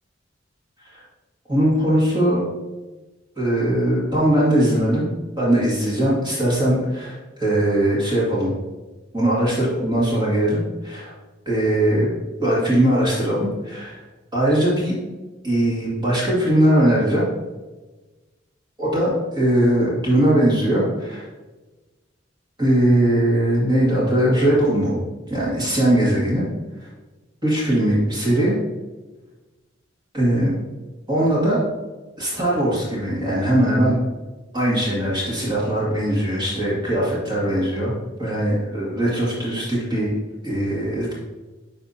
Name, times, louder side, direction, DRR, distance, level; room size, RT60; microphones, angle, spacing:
voice 1, 1.5-2.4 3.4-5.1 5.4-8.5 9.1-11.1 11.5-12.1 12.4-14.0 14.3-15.0 15.4-17.3 18.8-21.3 22.6-25.0 25.3-26.5 26.8-26.9 27.4-28.6 30.1-30.5 31.1-31.6 32.2-34.0 34.5-37.9 38.2-40.1 40.4-41.1, right 1 dB, 25° right, -7 dB, 2.0 m, -20 dB
10.5 x 3.5 x 2.7 m, 1.2 s
head